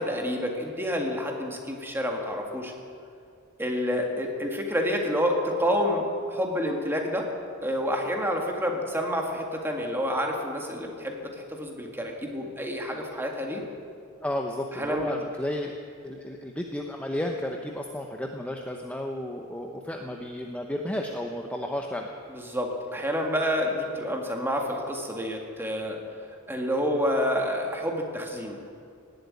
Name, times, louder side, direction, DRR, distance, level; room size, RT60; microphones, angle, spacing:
voice 1, 0.0-2.7 3.6-7.3 7.6-13.6 14.7-15.1 22.3-26.0 26.5-28.6, equal, 10° right, 1 dB, 1.9 m, -28 dB
voice 2, 14.2-15.7 16.0-22.1, left 1 dB, 5° left, 2 dB, 0.8 m, -32 dB
17.5 x 8.0 x 9.6 m, 2.4 s
head